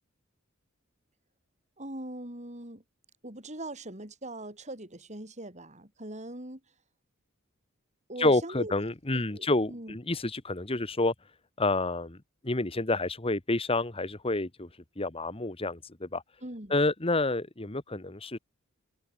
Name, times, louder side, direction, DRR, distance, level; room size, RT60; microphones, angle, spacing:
voice 1, 1.8-2.8 3.2-6.6 8.1-8.7 9.1-10.0 16.4-16.8, right 1 dB, 35° right, 6.5 m, -41 dB
voice 2, 8.2-11.1 11.6-12.2 12.4-14.7 15.0-16.2 16.7-18.4, left 2 dB, 25° left, 1.5 m, -28 dB
head